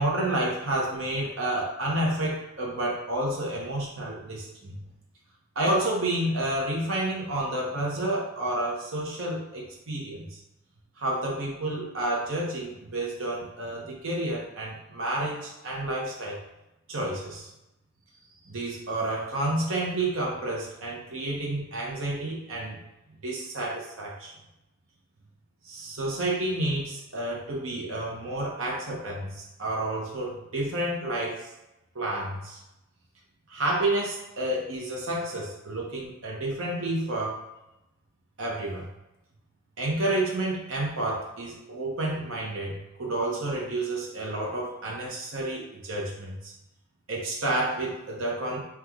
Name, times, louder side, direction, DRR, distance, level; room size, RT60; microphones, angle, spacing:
voice 1, 0.0-4.8 5.5-10.4 11.0-16.4 16.9-17.5 18.4-22.8 23.2-24.3 25.6-31.5 31.9-32.6 33.5-37.4 38.4-38.9 39.8-46.5 47.1-48.7, right 1 dB, 85° right, -3 dB, 1.0 m, -30 dB
4.5 x 2.4 x 3.6 m, 0.93 s
head